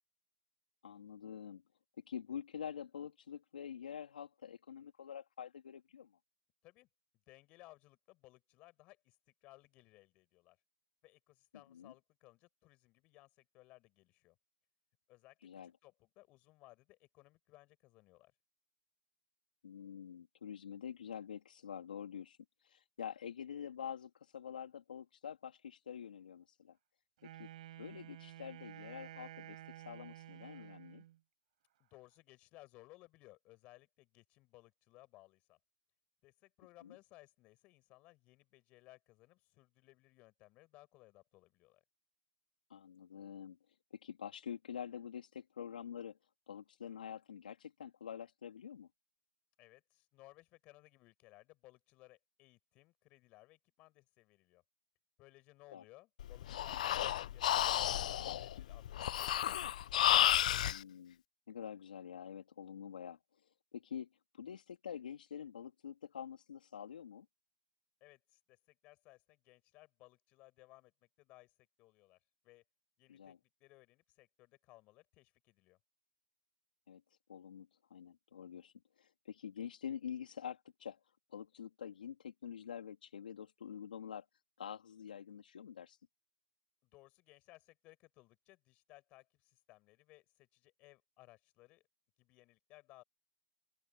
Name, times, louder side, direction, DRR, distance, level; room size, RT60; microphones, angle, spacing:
voice 1, 0.8-1.6 2.0-6.1 11.7-11.9 15.4-15.7 19.6-22.4 22.6-26.8 27.4-27.5 27.8-31.0 36.8-36.9 42.7-43.6 43.9-46.2 46.5-48.9 55.7-55.8 60.6-61.2 61.5-63.2 63.7-64.1 64.3-67.3 73.1-73.4 76.9-77.0 77.3-81.0 81.3-84.3 84.6-86.0, left 8 dB, 85° left, 3.2 m, -47 dB
voice 2, 7.3-9.2 9.4-10.6 11.0-14.4 15.1-18.3 31.8-35.6 36.2-41.8 49.6-54.6 55.2-59.6 68.0-71.5 71.8-72.2 72.4-72.6 73.0-75.8 86.8-91.8 92.2-93.0, left 20 dB, 25° left, 7.4 m, -62 dB
Wind instrument woodwind instrument, 27.2-31.2, right 13 dB, 55° right, 5.1 m, -52 dB
Breathing, 56.2-60.8, left 12 dB, 60° left, 0.6 m, -32 dB
open air
hypercardioid pair, 155°, 5 cm